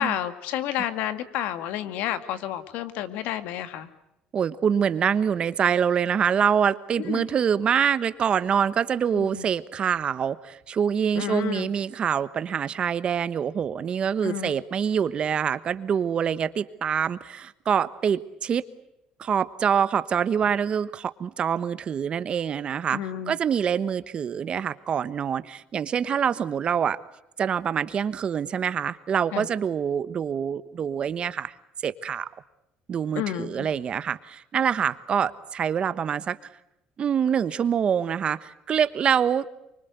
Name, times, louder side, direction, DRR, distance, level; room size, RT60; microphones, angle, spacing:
voice 1, 0.0-3.9 7.0-7.3 9.1-9.5 11.1-11.7 14.2-14.5 22.9-23.4 29.3-29.5 33.2-33.7, left 11 dB, 80° left, 11 dB, 2.0 m, -30 dB
voice 2, 4.3-18.6 19.2-23.0 23.3-27.0 27.4-31.5 31.8-32.3 32.9-36.4 37.0-39.6, right 7 dB, 40° right, 15 dB, 1.2 m, -25 dB
24.5 x 24.5 x 8.1 m, 0.84 s
cardioid pair, 120°, 3 cm